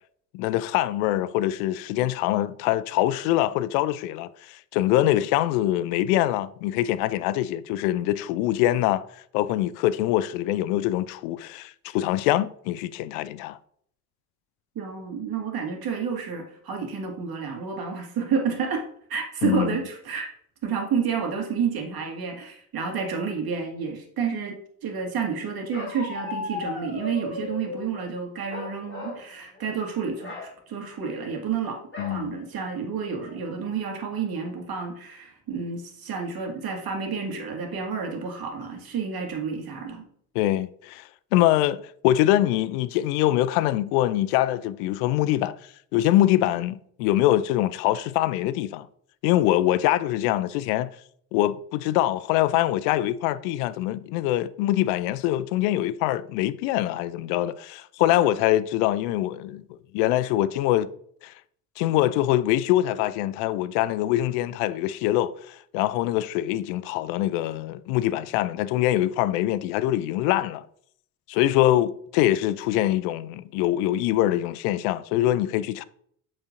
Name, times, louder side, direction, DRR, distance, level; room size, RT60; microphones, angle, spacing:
voice 1, 0.3-9.0 9.3-13.6 19.4-19.8 32.0-32.4 40.3-45.6 45.9-48.9 49.2-50.9 51.3-60.9 61.2-61.3 61.8-70.6 71.3-75.8, left 14 dB, 70° left, 0.6 m, -24 dB
voice 2, 14.8-18.8 19.1-20.3 20.6-31.8 32.1-40.0, right 6 dB, 50° right, 2.3 m, -30 dB
Bark, 25.7-27.8 28.5-29.2 29.6-29.8 30.2-30.5 31.9-32.2 32.7-32.8 33.2-33.6, left 3 dB, 25° left, 3.1 m, -35 dB
8.0 x 7.2 x 2.6 m
hypercardioid pair, 60°, 47 cm